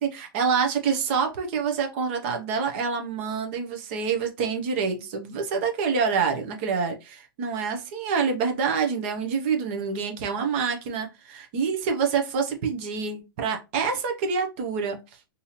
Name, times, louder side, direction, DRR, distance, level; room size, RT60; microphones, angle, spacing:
voice 1, 0.0-15.0, right 5 dB, 30° right, 0.6 m, -27 dB
4.0 x 2.7 x 2.9 m
supercardioid pair, 175°, 12 cm